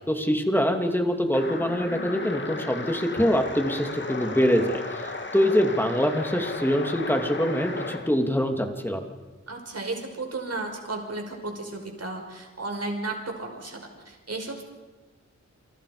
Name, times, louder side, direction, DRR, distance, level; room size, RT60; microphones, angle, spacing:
voice 1, 0.1-9.0, equal, 5° left, 4 dB, 2.8 m, -24 dB
sound 1, 1.3-8.1, left 3 dB, 40° left, 2.1 m, -35 dB
voice 2, 9.5-14.6, right 2 dB, 60° right, 2 dB, 5.5 m, -34 dB
29.0 x 26.5 x 5.2 m, 1.2 s
wide cardioid pair, 110°, 29 cm